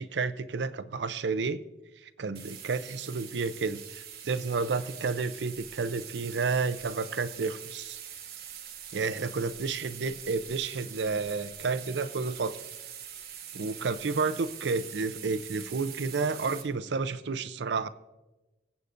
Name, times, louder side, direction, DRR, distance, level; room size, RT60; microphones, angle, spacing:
voice 1, 0.0-1.6 2.0-8.0 8.9-12.6 13.5-17.9, right 4 dB, 90° right, 14 dB, 0.5 m, -31 dB
sound 1, 2.3-16.6, right 9 dB, 60° right, 1.2 m, -44 dB
24.0 x 8.2 x 2.6 m, 1.1 s
head